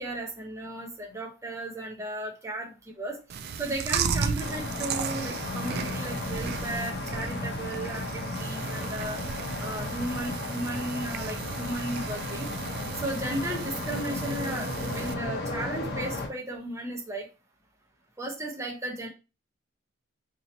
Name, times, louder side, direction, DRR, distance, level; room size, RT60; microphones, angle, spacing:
voice 1, 0.0-3.2 3.6-9.2 9.6-12.5 12.9-17.3 18.2-19.1, right 1 dB, 15° right, -1 dB, 0.8 m, -35 dB
Chewing mastication, 3.3-15.1, right 6 dB, 50° right, 0.3 m, -35 dB
sound 1, 4.4-16.3, left 2 dB, 50° left, 0.8 m, -34 dB
2.9 x 2.8 x 4.0 m, 0.30 s
head